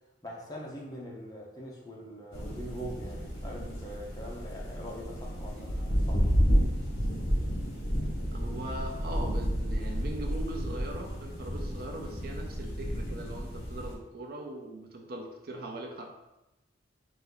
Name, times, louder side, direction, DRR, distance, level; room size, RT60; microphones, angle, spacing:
voice 1, 0.2-6.3, equal, 20° left, -3 dB, 0.8 m, -43 dB
sound 1, 2.3-13.9, equal, 55° left, 1.2 m, -31 dB
voice 2, 8.3-16.1, right 1 dB, 55° right, 2 dB, 0.5 m, -40 dB
4.1 x 2.7 x 3.9 m, 0.95 s
head